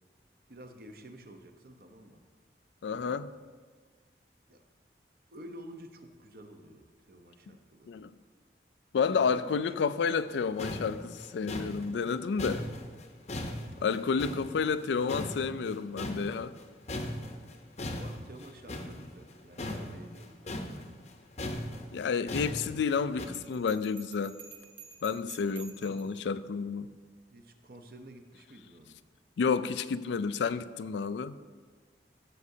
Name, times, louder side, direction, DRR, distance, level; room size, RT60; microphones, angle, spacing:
voice 1, 0.5-2.2 2.9-3.3 4.5-4.6 5.3-8.0 9.1-9.6 13.7-14.2 17.9-20.5 25.8-26.1 27.3-29.0, right 1 dB, 55° right, 6 dB, 0.8 m, -50 dB
voice 2, 2.8-3.3 7.9-8.1 8.9-12.6 13.8-16.5 21.9-24.4 25.0-26.9 29.4-31.4, left 5 dB, 80° left, 14 dB, 0.3 m, -30 dB
sound 1, 10.3-10.4 10.6-14.8 15.1-16.6 16.9-23.3, left 1 dB, 40° left, 0.7 m, -38 dB
Bell, 23.2-26.2, right 6 dB, 10° right, 1.0 m, -50 dB
14.5 x 6.5 x 2.7 m, 1.5 s
head